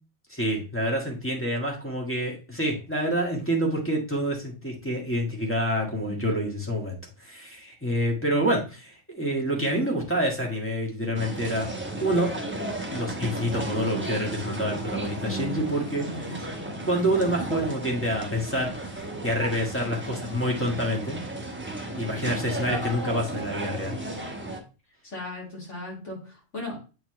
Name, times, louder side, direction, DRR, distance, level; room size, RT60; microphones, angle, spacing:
voice 1, 0.3-11.7 12.0-12.3 12.9-16.4 16.9-18.7 19.2-21.2 21.9-24.0, equal, 10° left, -1 dB, 1.5 m, -27 dB
voice 2, 6.0-6.4 15.2-16.6 25.0-26.8, left 2 dB, 70° left, -3 dB, 2.9 m, -37 dB
sound 1, 11.1-24.6, right 1 dB, 10° right, 0.8 m, -34 dB
7.7 x 4.2 x 3.1 m, 0.32 s
omnidirectional pair, 1.3 m